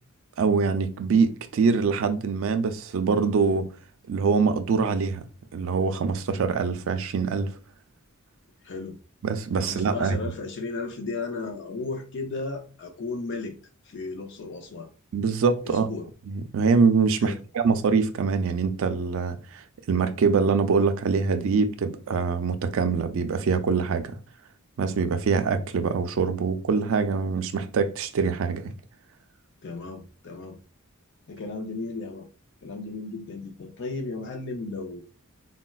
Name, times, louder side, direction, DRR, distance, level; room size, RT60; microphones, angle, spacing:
voice 1, 0.4-3.7 4.1-5.2 5.5-7.5 9.2-10.2 15.1-15.9 16.3-24.1 24.8-28.7, right 5 dB, 65° right, 0.4 m, -24 dB
voice 2, 8.6-9.0 9.6-13.5 13.8-14.9 15.6-16.1 17.2-17.4 29.6-30.6 31.3-32.3 32.6-35.0, left 3 dB, 60° left, 0.5 m, -34 dB
4.0 x 2.1 x 2.2 m
head